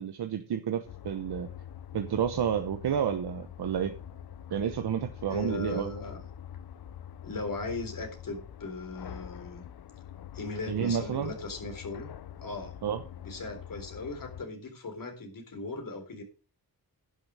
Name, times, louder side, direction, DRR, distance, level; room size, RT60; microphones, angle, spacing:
voice 1, 0.0-1.5 1.9-3.9 4.5-5.9 10.7-11.3 12.8-13.0, right 8 dB, 90° right, 7 dB, 1.0 m, -30 dB
sound 1, 0.8-14.4, left 10 dB, 75° left, 0.8 m, -45 dB
voice 2, 5.3-6.2 7.2-9.6 10.3-12.1 12.4-12.7 13.2-16.2, left 3 dB, 60° left, 4 dB, 3.9 m, -38 dB
11.0 x 6.6 x 6.3 m, 0.35 s
wide cardioid pair, 105°, 38 cm